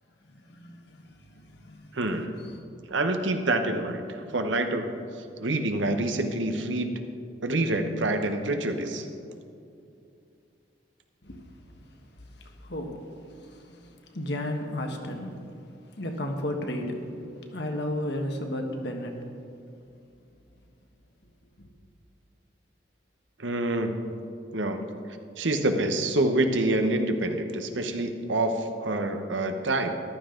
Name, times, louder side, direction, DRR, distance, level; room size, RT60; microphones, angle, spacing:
voice 1, 0.3-2.0 2.4-2.6 11.2-12.1 12.3-15.4 16.0-19.3 21.6-21.7, left 1 dB, 65° left, 3 dB, 1.5 m, -34 dB
voice 2, 1.9-2.3 2.9-4.9 5.4-6.9 7.4-9.1 23.4-24.1 24.5-24.8 25.4-29.9, right 2 dB, 85° right, 6 dB, 1.1 m, -27 dB
14.5 x 12.0 x 3.9 m, 2.5 s
head